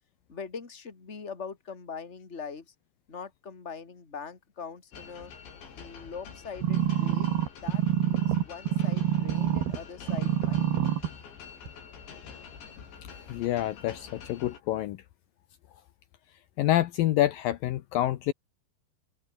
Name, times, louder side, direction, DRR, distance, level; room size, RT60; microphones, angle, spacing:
voice 1, 0.3-2.7 3.1-5.3 5.7-7.3 7.6-10.9, left 5 dB, 20° left, 2.3 m, -42 dB
sound 1, 4.9-14.6, left 6 dB, 70° left, 7.1 m, -47 dB
sound 2, 6.6-9.8 10.1-11.1 11.7-11.8, right 11 dB, 60° right, 3.6 m, -26 dB
voice 2, 13.3-15.0 16.6-18.3, left 13 dB, 85° left, 2.0 m, -27 dB
open air
omnidirectional pair, 5.4 m